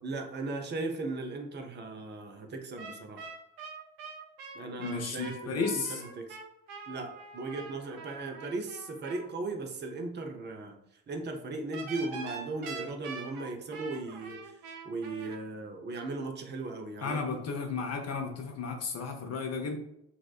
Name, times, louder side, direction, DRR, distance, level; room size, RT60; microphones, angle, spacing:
voice 1, 0.0-3.3 4.5-6.4 6.9-10.8 11.1-14.5 14.8-17.2, right 3 dB, 25° right, 4 dB, 0.5 m, -37 dB
sound 1, 2.8-9.3 11.7-15.4, right 4 dB, 75° right, 0.6 m, -44 dB
voice 2, 4.8-6.0 17.0-19.8, left 4 dB, 35° left, 3 dB, 0.6 m, -33 dB
2.8 x 2.1 x 2.3 m, 0.78 s
figure-of-eight pair, 40°, 46 cm